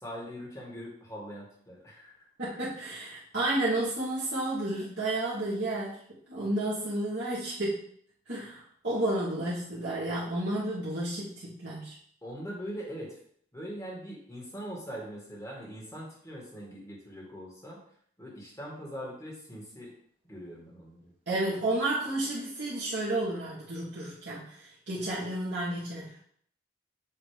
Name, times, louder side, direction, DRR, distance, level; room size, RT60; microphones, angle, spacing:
voice 1, 0.0-2.1 12.2-13.2 13.5-17.8 18.2-19.9 20.3-21.1, equal, 15° left, -4 dB, 1.7 m, -42 dB
voice 2, 2.4-6.0 6.3-7.8 8.3-11.9 21.3-26.2, right 1 dB, 70° right, -8 dB, 1.6 m, -31 dB
7.4 x 2.9 x 5.0 m, 0.63 s
head